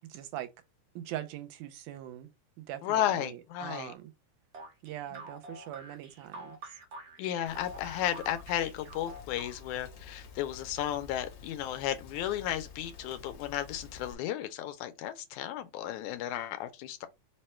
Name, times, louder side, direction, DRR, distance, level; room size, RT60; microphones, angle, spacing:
voice 1, 0.1-0.5 1.0-2.3 2.6-4.1 4.8-6.7, right 13 dB, 85° right, 2.0 m, -42 dB
voice 2, 2.8-3.9 5.1-5.2 7.2-17.1, left 12 dB, 80° left, 2.0 m, -34 dB
sound 1, 4.5-9.9, right 2 dB, 55° right, 1.3 m, -47 dB
Rain, 7.5-14.1, left 5 dB, 60° left, 1.5 m, -50 dB
4.8 x 2.2 x 4.3 m
omnidirectional pair, 3.6 m